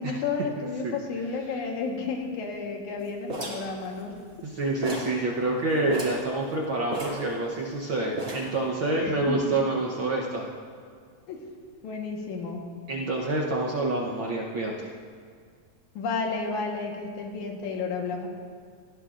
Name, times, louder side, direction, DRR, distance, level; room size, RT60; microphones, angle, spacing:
voice 1, 0.0-4.1 9.0-9.6 11.3-11.4 11.8-12.6 16.0-18.3, left 4 dB, 85° left, 1 dB, 2.8 m, -32 dB
voice 2, 0.6-0.9 4.4-10.5 12.9-14.9, right 2 dB, 65° right, -2 dB, 1.3 m, -27 dB
sound 1, 3.3-4.5 4.8-5.2 5.5-5.6 5.9-6.3 6.9-7.8 8.2-8.6, right 2 dB, 20° right, 2.6 m, -35 dB
19.0 x 15.5 x 2.5 m, 2.1 s
omnidirectional pair, 3.3 m